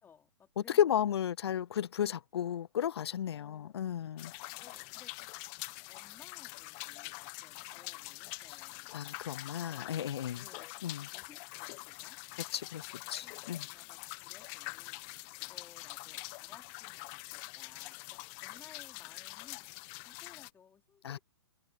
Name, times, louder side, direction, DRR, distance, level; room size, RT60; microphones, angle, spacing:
voice 1, 0.0-1.2 3.3-3.9 4.6-5.3 5.9-8.9 9.7-9.9 10.4-10.7 11.0-12.2 12.9-15.0 15.4-19.7 20.1-21.2, left 7 dB, 15° left, 4.4 m, -60 dB
voice 2, 0.8-4.3 8.9-10.4 10.8-11.0 12.5-13.6 21.0-21.2, left 9 dB, 70° left, 0.4 m, -33 dB
sound 1, 4.2-20.5, left 29 dB, 35° left, 1.2 m, -45 dB
hypercardioid pair, 130°, 14 cm